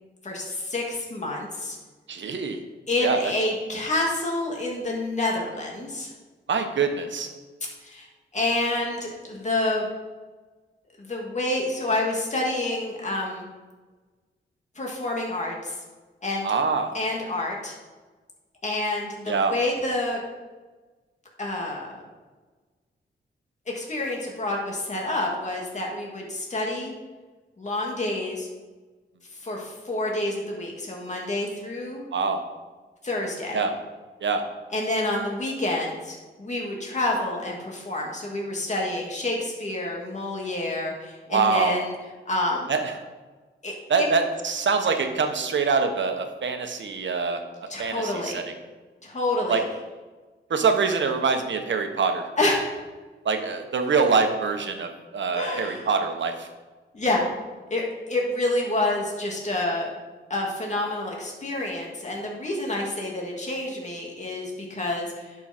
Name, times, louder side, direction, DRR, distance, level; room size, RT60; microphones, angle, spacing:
voice 1, 0.2-1.8 2.9-6.1 7.8-8.1 8.3-9.9 11.0-13.5 14.8-15.7 16.2-16.5 16.9-17.7 18.6-20.2 21.4-21.9 23.7-26.9 27.6-28.5 29.4-32.0 33.0-33.7 34.7-41.9 42.3-42.7 43.6-44.1 47.7-48.4 49.0-49.6 52.4-52.8 55.3-55.9 56.9-57.2 57.7-59.9 60.3-65.4, left 2 dB, 35° left, -1 dB, 2.5 m, -28 dB
voice 2, 2.1-2.6 3.0-3.2 6.5-7.3 16.4-16.9 19.3-19.5 32.1-32.4 33.5-33.7 34.2-34.4 41.3-41.8 42.7-43.0 43.9-47.4 47.8-48.4 49.5-49.6 50.5-52.3 53.2-56.5, right 5 dB, 65° right, 5 dB, 1.3 m, -24 dB
11.0 x 6.4 x 4.5 m, 1.3 s
cardioid pair, 75°, 20 cm